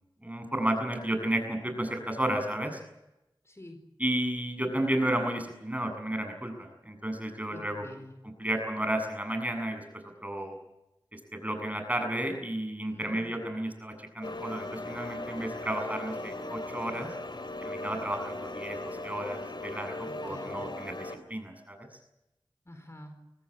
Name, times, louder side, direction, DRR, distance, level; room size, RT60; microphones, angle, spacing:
voice 1, 0.2-2.8 4.0-7.8 8.2-9.8 10.2-10.5 11.1-17.1 17.6-20.0 20.2-21.9, right 1 dB, 15° right, 5 dB, 7.6 m, -32 dB
voice 2, 3.4-3.8 7.5-8.1 12.9-13.3 20.0-20.6 22.7-23.1, left 1 dB, 35° left, 6 dB, 4.2 m, -47 dB
sound 1, 14.2-21.2, left 2 dB, 65° left, 3.2 m, -38 dB
25.0 x 18.5 x 8.7 m, 0.91 s
wide cardioid pair, 45°, 9 cm